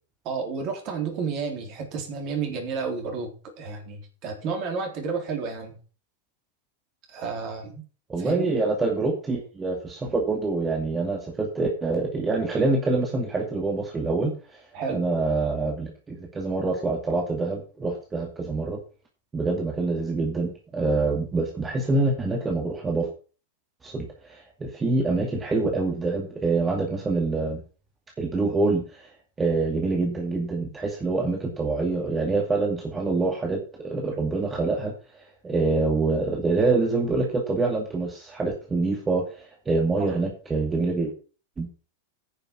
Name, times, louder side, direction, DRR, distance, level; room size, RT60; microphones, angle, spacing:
voice 1, 0.2-5.8 7.1-7.8 8.2-8.6 14.7-15.0 40.0-40.1, right 5 dB, 40° right, 3 dB, 3.8 m, -31 dB
voice 2, 8.1-14.6 14.9-18.8 19.3-23.1 23.8-27.6 28.2-29.1 29.4-41.1 41.6-41.7, right 3 dB, 15° right, 0 dB, 2.3 m, -26 dB
10.0 x 6.8 x 6.0 m, 0.36 s
figure-of-eight pair, 90°, 0 cm